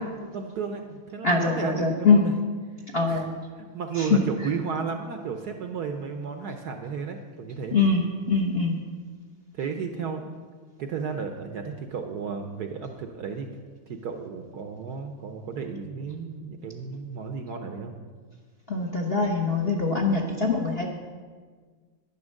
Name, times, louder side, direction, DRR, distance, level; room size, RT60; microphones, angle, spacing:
voice 1, 0.3-2.3 3.1-3.2 3.6-7.8 9.5-10.3 10.8-13.5 13.9-17.9, right 5 dB, 65° right, 5 dB, 1.1 m, -33 dB
voice 2, 1.2-2.3 2.9-3.3 4.0-4.2 7.7-8.8 18.7-20.9, left 4 dB, 40° left, 0 dB, 0.9 m, -23 dB
10.0 x 9.8 x 6.4 m, 1.6 s
omnidirectional pair, 2.2 m